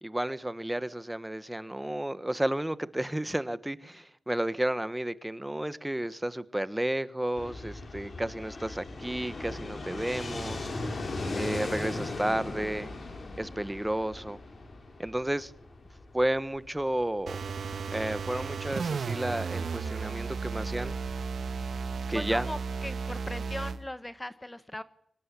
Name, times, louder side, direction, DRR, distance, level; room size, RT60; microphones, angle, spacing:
voice 1, 0.0-10.7 11.3-12.9 13.4-14.4 15.0-15.5 16.1-17.4 17.9-21.0 22.1-22.5, right 1 dB, 10° right, 1.2 m, -32 dB
Fixed-wing aircraft airplane, 7.4-23.1, left 2 dB, 50° left, 4.8 m, -39 dB
sound 1, 17.3-23.8, right 5 dB, 80° right, 1.7 m, -34 dB
voice 2, 22.1-24.8, left 1 dB, 15° left, 1.0 m, -39 dB
24.5 x 19.0 x 10.0 m
wide cardioid pair, 130°, 0 cm